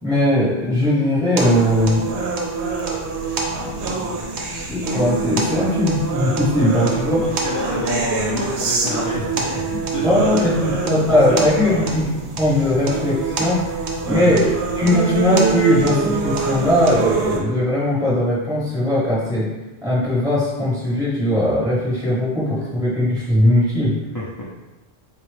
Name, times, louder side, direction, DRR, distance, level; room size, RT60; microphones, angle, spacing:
voice 1, 0.0-2.1 4.5-7.2 10.0-12.1 12.4-13.6 14.1-19.5 19.8-23.9, left 1 dB, 5° right, -9 dB, 0.7 m, -19 dB
sound 1, 1.4-17.4, right 4 dB, 85° right, 0.9 m, -25 dB
voice 2, 5.5-5.8 6.6-11.9 14.1-14.4 24.1-24.4, left 2 dB, 35° left, -8 dB, 0.3 m, -28 dB
3.9 x 2.3 x 3.2 m, 1.1 s
omnidirectional pair, 1.1 m